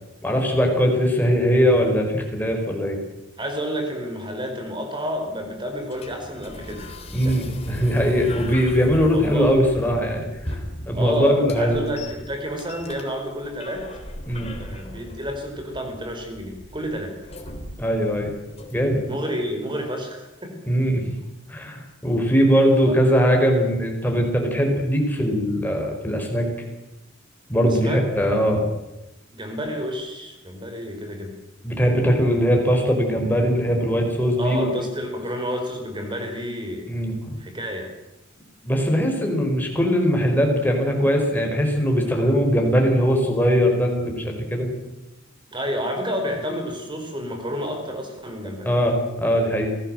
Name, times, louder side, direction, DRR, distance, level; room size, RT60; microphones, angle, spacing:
voice 1, 0.2-3.0 7.1-10.5 10.8-11.8 14.3-14.5 17.8-18.3 18.7-19.0 20.7-21.0 21.5-26.5 27.5-28.6 31.6-34.7 36.9-37.3 38.6-44.8 48.6-49.7, equal, 10° left, 2 dB, 4.9 m, -20 dB
voice 2, 3.4-6.9 7.2-7.4 9.1-9.6 10.9-13.9 14.6-17.1 19.0-20.5 22.8-23.1 27.6-28.0 29.3-31.4 34.4-36.9 37.4-37.9 45.5-48.7, equal, 25° right, 4 dB, 4.7 m, -30 dB
sound 1, 5.2-19.1, left 1 dB, 30° left, 3.5 m, -37 dB
27.0 x 17.5 x 7.8 m, 0.97 s
head